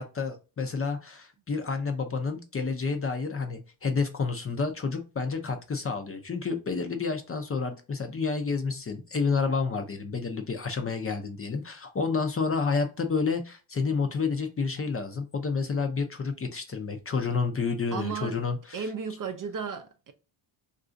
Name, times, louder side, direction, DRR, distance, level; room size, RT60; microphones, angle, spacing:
voice 1, 0.0-18.9, left 4 dB, 30° left, 0.5 m, -30 dB
voice 2, 17.9-18.4 18.7-20.1, right 6 dB, 40° right, 0.5 m, -34 dB
2.5 x 2.3 x 3.8 m
cardioid pair, 90°, 50 cm